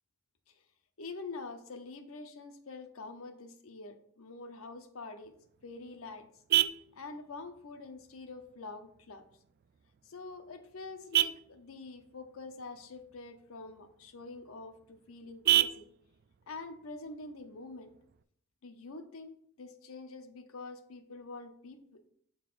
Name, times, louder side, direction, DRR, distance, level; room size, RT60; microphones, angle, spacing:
voice 1, 1.0-5.3 5.6-6.3 6.9-9.2 10.1-15.9 16.5-17.9 18.6-22.1, left 3 dB, 90° left, 8 dB, 0.8 m, -46 dB
Vehicle horn car horn honking, 5.2-18.2, right 13 dB, 50° right, 0.3 m, -36 dB
11.5 x 4.0 x 2.5 m, 0.66 s
head